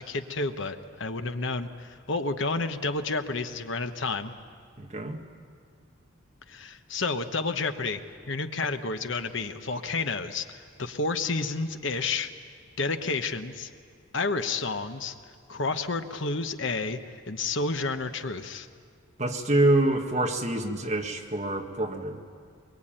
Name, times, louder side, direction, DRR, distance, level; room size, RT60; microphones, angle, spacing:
voice 1, 0.0-4.3 6.5-8.0 8.3-12.3 12.8-13.7 14.1-15.1 15.5-17.0 17.3-18.7, left 3 dB, 60° left, 8 dB, 1.1 m, -30 dB
voice 2, 4.8-5.2 19.2-22.2, right 2 dB, 35° right, 2 dB, 1.8 m, -26 dB
23.5 x 23.0 x 9.0 m, 2.1 s
head